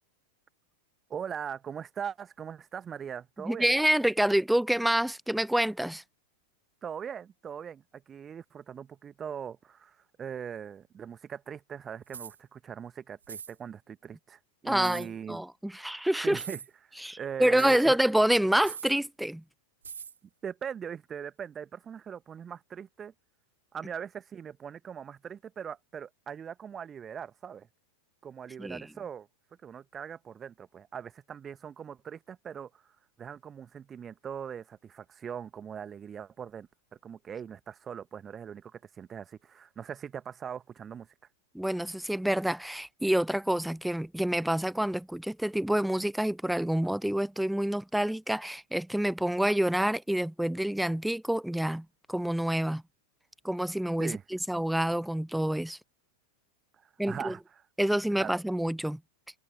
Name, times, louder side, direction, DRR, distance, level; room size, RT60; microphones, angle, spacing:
voice 1, 1.1-3.7 6.8-15.4 16.2-18.0 20.4-23.1 23.7-27.7 28.2-29.3 29.6-41.1 54.0-54.2 56.7-57.6 58.2-58.4, right 8 dB, 20° right, 1.4 m, -41 dB
voice 2, 3.4-6.0 14.6-16.4 17.0-19.4 28.6-28.9 41.5-52.8 53.4-55.8 57.0-57.3 57.8-59.0, right 1 dB, ahead, 0.3 m, -27 dB
sound 1, 12.1-12.4 13.2-13.5 14.8-15.1 16.3-16.7 17.6-17.9 18.6-19.0 19.8-20.2, right 7 dB, 70° right, 0.8 m, -41 dB
figure-of-eight pair, 90°, 0 cm